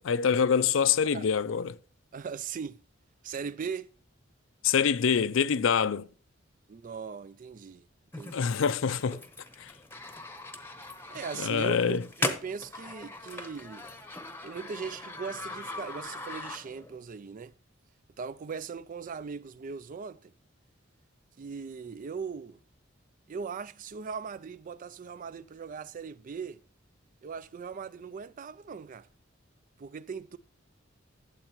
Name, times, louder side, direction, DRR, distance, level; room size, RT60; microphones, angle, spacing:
voice 1, 0.0-1.8 4.6-6.1 8.3-9.2 9.6-9.7 11.4-12.0, left 6 dB, 70° left, 0.5 m, -25 dB
voice 2, 2.1-2.8 3.2-3.9 6.7-7.9 8.1-8.5 11.1-13.9 14.4-17.5 18.2-20.3 21.4-22.6 23.3-26.6 27.2-29.1 29.8-30.4, right 5 dB, 45° right, 0.4 m, -39 dB
sound 1, 8.1-17.0, left 2 dB, 10° left, 0.9 m, -39 dB
12.0 x 7.4 x 3.0 m
head